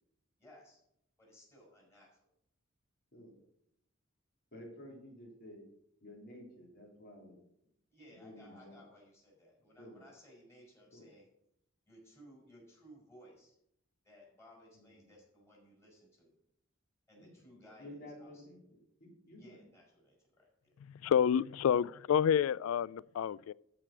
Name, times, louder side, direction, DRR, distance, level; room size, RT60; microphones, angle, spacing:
voice 1, 0.4-0.8 1.2-2.2 7.9-11.3 11.9-13.6 14.0-16.3 17.1-18.4 19.4-20.7, equal, 15° left, 5.0 m, -59 dB
voice 2, 4.5-5.6 6.0-7.4 8.2-8.8 9.8-10.0 10.9-11.1 14.7-15.1 17.2-17.4 17.8-18.6 19.0-19.6, left 1 dB, 50° left, 3.3 m, -52 dB
voice 3, 21.0-23.5, left 8 dB, 85° left, 0.3 m, -29 dB
13.5 x 4.9 x 6.0 m
head